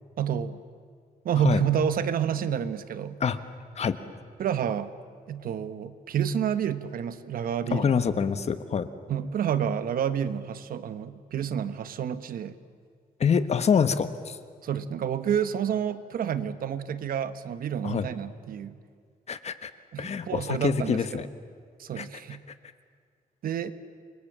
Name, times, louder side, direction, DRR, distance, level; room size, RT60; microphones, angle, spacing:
voice 1, 0.2-0.6 1.2-3.2 4.4-4.9 5.3-7.9 9.1-12.5 14.6-18.8 19.9-21.2 21.8-22.4 23.4-23.7, right 8 dB, 85° right, 12 dB, 1.3 m, -29 dB
voice 2, 7.7-8.9 13.2-14.4 17.8-18.1 19.3-19.7 20.0-21.3 21.9-22.1, left 6 dB, 50° left, 11 dB, 1.4 m, -26 dB
28.5 x 24.5 x 7.5 m, 2.1 s
wide cardioid pair, 140°, 15 cm